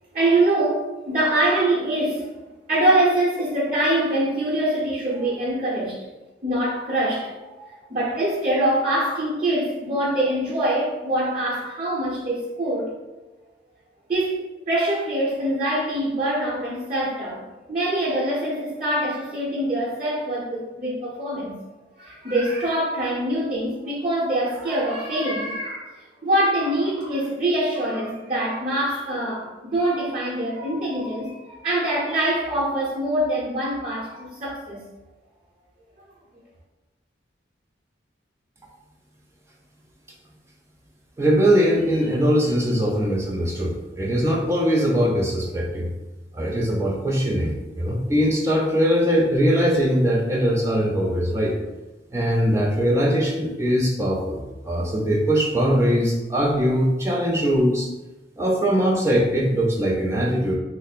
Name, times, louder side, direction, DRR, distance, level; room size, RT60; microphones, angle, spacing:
voice 1, 0.1-2.4 2.7-6.0 6.4-12.9 14.1-21.6 22.0-26.0 26.2-34.8, right 1 dB, 35° right, -6 dB, 0.8 m, -24 dB
voice 2, 41.2-45.9 46.3-51.6 52.1-57.9 58.4-60.6, equal, 15° right, -2 dB, 0.4 m, -21 dB
3.1 x 2.0 x 4.1 m, 1.1 s
head